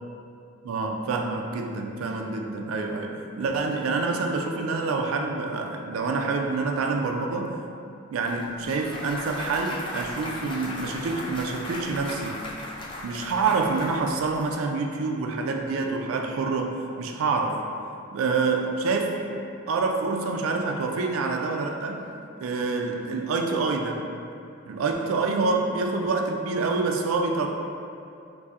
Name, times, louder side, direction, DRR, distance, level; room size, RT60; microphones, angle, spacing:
voice 1, 0.6-7.6 8.1-12.4 13.0-17.6 18.1-22.1 22.4-24.0 24.7-27.5, right 3 dB, 85° right, 2 dB, 0.4 m, -27 dB
Clapping / Cheering / Applause, 8.3-14.5, left 1 dB, 25° left, 0.3 m, -37 dB
4.1 x 2.6 x 2.4 m, 2.5 s
head